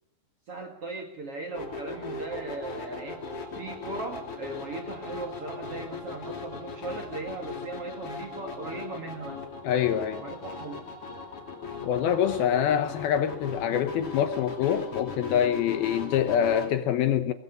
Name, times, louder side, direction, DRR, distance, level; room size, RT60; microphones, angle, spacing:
voice 1, 0.5-3.3 3.5-9.4 10.2-10.8, right 3 dB, 45° right, 2.1 m, -38 dB
sound 1, 1.5-16.7, left 3 dB, 35° left, 3.3 m, -38 dB
voice 2, 9.6-10.2 11.8-17.3, left 9 dB, 70° left, 2.6 m, -25 dB
23.5 x 20.5 x 5.4 m
omnidirectional pair, 5.0 m